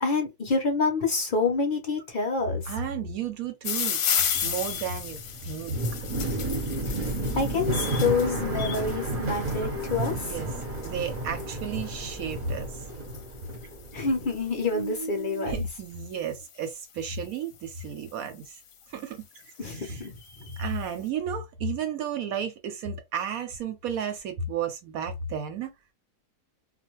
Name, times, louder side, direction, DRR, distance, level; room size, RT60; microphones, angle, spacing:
voice 1, 0.0-2.7 7.3-10.1 13.9-15.6 19.6-20.2, left 4 dB, 50° left, 0.6 m, -27 dB
voice 2, 2.7-4.0 4.4-5.8 10.1-10.5 10.8-12.8 15.4-18.6 18.9-19.3 19.6-20.0 20.6-25.7, right 6 dB, 70° right, 1.0 m, -33 dB
sound 1, 3.6-16.8 17.7-18.1 18.7-18.8 19.0-19.1 19.4-20.7, left 8 dB, 65° left, 0.9 m, -35 dB
sound 2, 4.3-14.4 14.7-15.5, right 1 dB, 40° right, 0.7 m, -32 dB
2.5 x 2.2 x 3.0 m
omnidirectional pair, 1.7 m